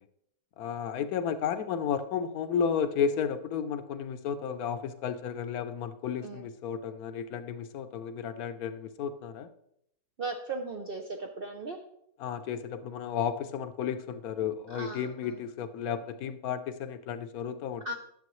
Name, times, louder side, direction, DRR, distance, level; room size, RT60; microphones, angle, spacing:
voice 1, 0.6-9.5 12.2-17.8, left 7 dB, 70° left, 10 dB, 1.0 m, -33 dB
voice 2, 10.2-11.8 14.7-15.4 17.8-17.9, right 2 dB, 70° right, 3 dB, 0.5 m, -37 dB
10.5 x 7.2 x 3.1 m, 0.75 s
omnidirectional pair, 1.8 m